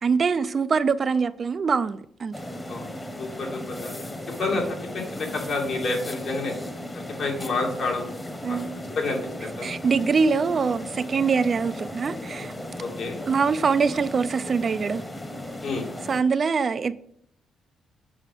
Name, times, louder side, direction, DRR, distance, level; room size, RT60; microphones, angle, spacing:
voice 1, 0.0-2.3 8.4-8.7 9.6-12.5 13.3-15.0 16.1-16.9, right 5 dB, 45° right, 0.4 m, -23 dB
sound 1, 2.3-16.2, left 1 dB, 15° left, 1.1 m, -36 dB
voice 2, 3.2-4.1 4.4-4.6 4.9-6.5 7.2-8.1 8.5-8.6 8.9-9.7 12.8-13.2 15.6-15.9, left 3 dB, 65° left, 2.4 m, -29 dB
7.5 x 4.8 x 4.9 m
cardioid pair, 90°, 0 cm